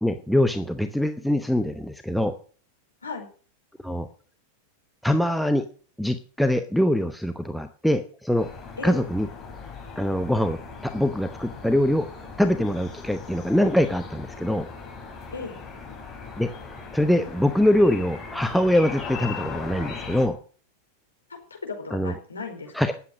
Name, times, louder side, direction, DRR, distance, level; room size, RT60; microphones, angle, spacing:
voice 1, 0.0-2.3 3.8-4.1 5.0-5.6 6.0-8.5 8.8-9.3 10.0-10.6 10.8-12.1 12.4-14.7 16.4-16.5 16.9-20.4 21.9-22.1 22.7-22.9, left 1 dB, ahead, 7 dB, 0.9 m, -23 dB
sound 1, 8.4-20.3, left 5 dB, 15° left, 5.7 m, -39 dB
voice 2, 21.3-22.7, left 4 dB, 75° left, 3 dB, 4.6 m, -35 dB
19.0 x 8.5 x 6.2 m, 0.43 s
figure-of-eight pair, 90°, 0 cm